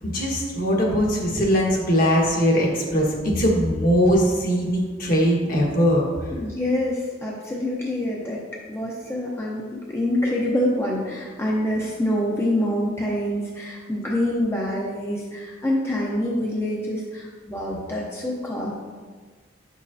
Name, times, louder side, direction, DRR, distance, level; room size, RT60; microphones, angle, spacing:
voice 1, 0.0-6.1, equal, 50° left, -2 dB, 1.4 m, -21 dB
voice 2, 6.3-8.4 8.7-18.7, left 1 dB, 15° left, -4 dB, 0.7 m, -26 dB
7.6 x 6.2 x 2.7 m, 1.5 s
head